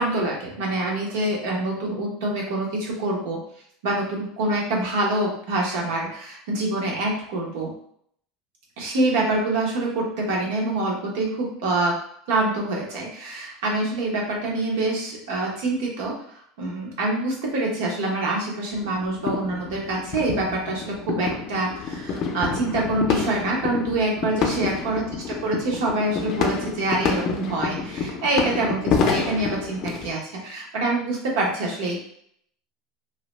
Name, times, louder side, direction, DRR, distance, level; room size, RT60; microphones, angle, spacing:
voice 1, 0.0-3.4 3.8-7.7 8.8-12.0 12.3-16.2 16.6-32.0, right 2 dB, 85° right, -2 dB, 0.9 m, -26 dB
sound 1, 18.7-30.1, left 5 dB, 40° left, 0.4 m, -28 dB
2.7 x 2.1 x 3.1 m, 0.66 s
supercardioid pair, 150°, 0 cm